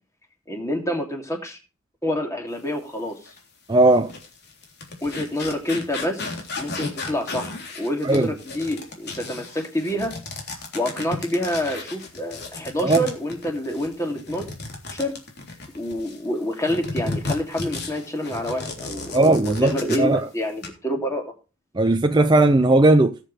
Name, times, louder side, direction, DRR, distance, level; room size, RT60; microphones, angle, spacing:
voice 1, 0.5-1.6 2.0-3.2 5.0-10.1 10.7-14.5 14.9-15.2 15.7-21.3, equal, 15° left, 2.9 m, -27 dB
sound 1, 3.2-3.4 3.9-16.2 16.6-20.2 20.5-20.7, left 3 dB, 50° left, 3.5 m, -34 dB
voice 2, 3.7-4.1 8.0-8.3 12.8-13.0 19.1-20.3 21.8-23.3, right 2 dB, 20° right, 0.6 m, -17 dB
19.0 x 7.6 x 3.4 m
head